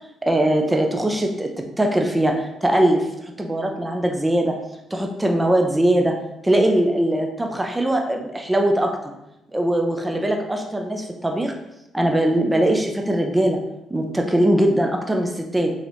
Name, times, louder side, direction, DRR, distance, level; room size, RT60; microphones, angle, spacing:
voice 1, 0.2-1.5 1.8-4.6 4.9-6.2 6.4-9.0 9.5-11.5 11.9-13.6 13.9-15.7, right 1 dB, 15° right, 3 dB, 0.5 m, -21 dB
3.9 x 3.8 x 3.0 m, 0.91 s
cardioid pair, 90°, 0 cm